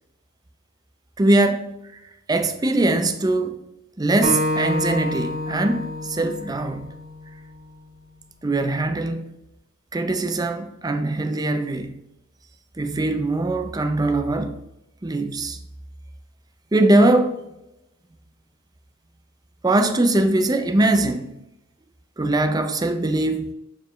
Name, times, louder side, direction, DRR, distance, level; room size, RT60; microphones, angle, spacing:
voice 1, 1.2-1.7 2.3-3.6 4.0-6.9 8.4-9.3 9.9-12.0 12.8-14.6 15.0-15.6 16.7-17.4 19.6-21.3 22.2-23.5, right 2 dB, 20° right, 0.5 m, -21 dB
Acoustic guitar, 4.2-7.5, left 1 dB, 65° right, 2.3 m, -27 dB
6.9 x 4.6 x 3.1 m
head